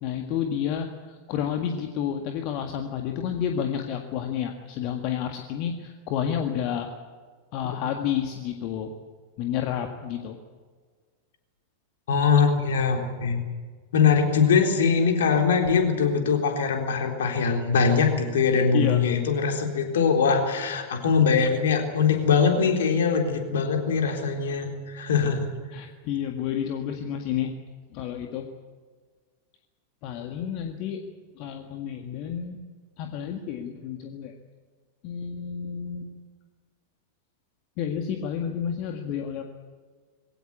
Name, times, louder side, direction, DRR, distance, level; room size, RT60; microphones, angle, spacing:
voice 1, 0.0-6.9 7.5-8.9 9.4-10.4 18.7-19.0 25.7-27.5 27.9-28.5 30.0-31.0 31.4-32.6 33.0-34.3 35.0-36.1 37.8-39.4, left 9 dB, 40° left, 5 dB, 1.8 m, -30 dB
voice 2, 12.1-13.4 13.9-25.5, left 5 dB, 60° left, 4 dB, 3.9 m, -22 dB
22.0 x 17.5 x 9.7 m, 1.5 s
figure-of-eight pair, 90°, 0 cm